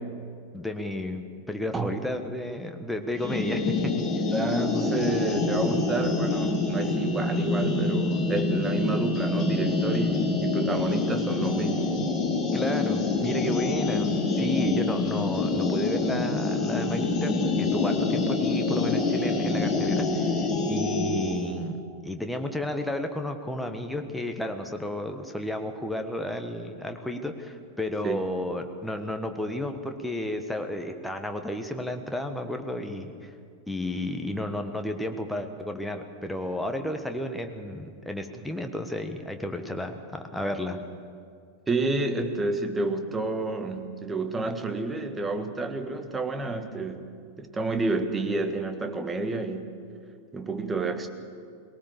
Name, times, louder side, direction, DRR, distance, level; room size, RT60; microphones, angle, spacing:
voice 1, 0.5-3.7 12.5-20.3 20.7-33.3 33.7-40.8, left 1 dB, 5° left, 5 dB, 1.5 m, -32 dB
sound 1, 3.1-21.4, left 3 dB, 25° left, 4.3 m, -26 dB
voice 2, 4.3-12.0 28.0-28.3 41.7-47.1 47.4-49.7 50.3-51.1, right 3 dB, 15° right, 7 dB, 1.5 m, -30 dB
20.0 x 18.5 x 7.2 m, 2.3 s
figure-of-eight pair, 90°, 0 cm